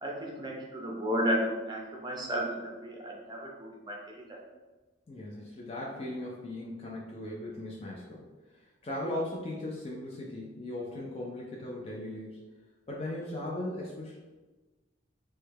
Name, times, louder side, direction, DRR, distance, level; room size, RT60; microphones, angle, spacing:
voice 1, 0.0-4.4, equal, 25° right, -1 dB, 0.6 m, -33 dB
voice 2, 5.1-8.3 8.5-12.4 12.9-14.2, left 1 dB, 30° left, -4 dB, 0.4 m, -38 dB
3.2 x 2.2 x 3.3 m, 1.2 s
head